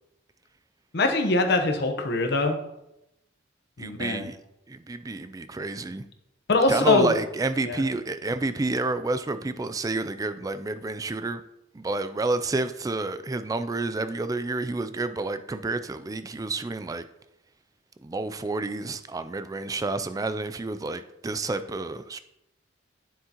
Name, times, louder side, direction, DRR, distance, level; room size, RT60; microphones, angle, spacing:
voice 1, 0.9-2.6 3.8-4.3 6.5-7.1 7.7-7.8, left 2 dB, 60° left, 5 dB, 1.0 m, -23 dB
voice 2, 3.8-4.4 4.7-6.0 6.7-11.4 11.7-17.0 18.0-22.2, right 2 dB, 20° right, 11 dB, 0.3 m, -29 dB
9.3 x 7.3 x 2.9 m, 0.86 s
head